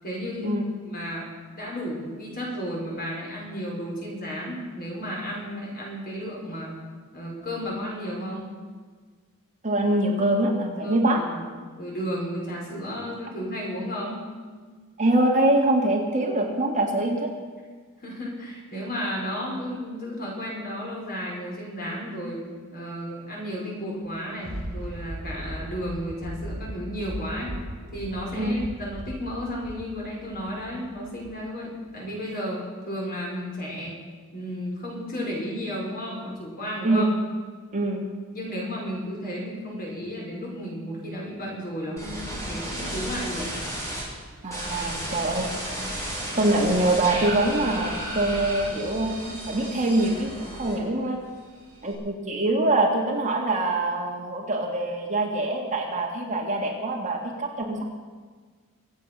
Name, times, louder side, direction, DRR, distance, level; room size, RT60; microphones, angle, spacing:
voice 1, 0.0-6.7 7.1-8.5 10.8-11.4 11.8-14.2 18.0-22.4 22.7-27.5 27.9-34.0 34.3-37.0 38.3-43.5 44.7-45.1 45.6-45.7, equal, 45° left, -3 dB, 5.4 m, -33 dB
voice 2, 9.6-11.2 15.0-17.3 28.4-28.5 36.8-37.1 37.7-38.1 44.4-45.5 46.3-51.2 51.8-57.9, right 2 dB, 35° right, 0 dB, 1.9 m, -24 dB
Thunder, 24.1-31.5 32.0-32.1, right 1 dB, 65° right, 2.4 m, -38 dB
sound 1, 42.0-44.0 44.5-51.1 51.4-51.9, right 1 dB, 15° left, 5.3 m, -33 dB
24.5 x 8.3 x 6.2 m, 1.5 s
head